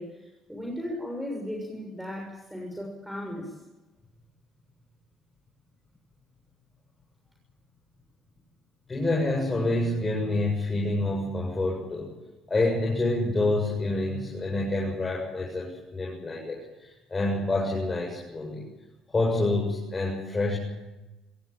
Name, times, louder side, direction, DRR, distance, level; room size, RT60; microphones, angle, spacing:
voice 1, 0.0-3.6, left 1 dB, 5° right, 0 dB, 6.6 m, -36 dB
voice 2, 8.9-12.1 12.5-18.6 19.1-20.5, left 2 dB, 25° left, -1 dB, 7.8 m, -27 dB
25.5 x 15.5 x 9.0 m, 1.0 s
supercardioid pair, 80°, 0 cm